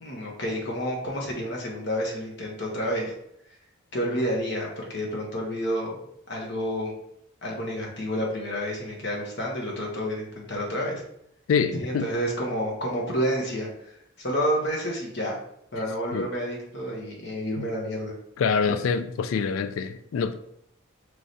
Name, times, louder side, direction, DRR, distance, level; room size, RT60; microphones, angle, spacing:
voice 1, 0.0-3.1 3.9-6.0 6.3-6.9 7.4-11.0 11.7-13.7 14.2-15.4 15.7-18.1, equal, 55° left, 1.1 m, -29 dB
voice 2, 11.5-12.1 16.1-16.3 17.6-17.7 18.4-20.3, left 6 dB, 85° left, 0.3 m, -25 dB
4.7 x 3.2 x 2.7 m
head